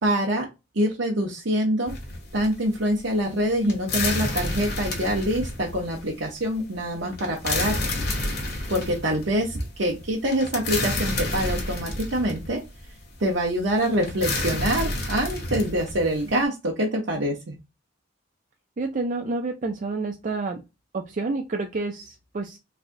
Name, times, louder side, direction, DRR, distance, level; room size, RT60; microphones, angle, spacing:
voice 1, 0.0-0.5 0.7-1.9 2.3-7.8 8.7-12.6 13.2-17.5, equal, 75° right, -2 dB, 0.9 m, -25 dB
sound 1, 1.9-16.4, left 2 dB, 55° left, 1.3 m, -30 dB
voice 2, 18.8-20.6 20.9-22.6, right 3 dB, 40° right, 4 dB, 0.4 m, -29 dB
3.6 x 3.3 x 2.6 m, 0.25 s
head